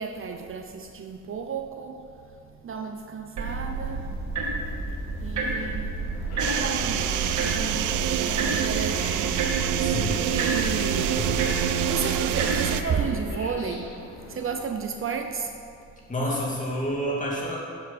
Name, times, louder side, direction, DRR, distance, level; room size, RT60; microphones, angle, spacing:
voice 1, 0.0-6.0 6.4-11.3 11.9-14.0 14.2-15.5, right 5 dB, 45° right, 5 dB, 0.7 m, -33 dB
sound 1, 3.4-13.3, right 3 dB, 70° right, 2.0 m, -30 dB
sound 2, 6.0-14.6, left 1 dB, 75° left, 2.4 m, -39 dB
sound 3, 6.4-12.8, right 12 dB, 85° right, 0.5 m, -27 dB
voice 2, 9.7-10.2 11.1-11.7 16.1-17.6, equal, 25° left, -4 dB, 2.8 m, -29 dB
11.5 x 7.6 x 4.4 m, 2.4 s
cardioid pair, 90°, 30 cm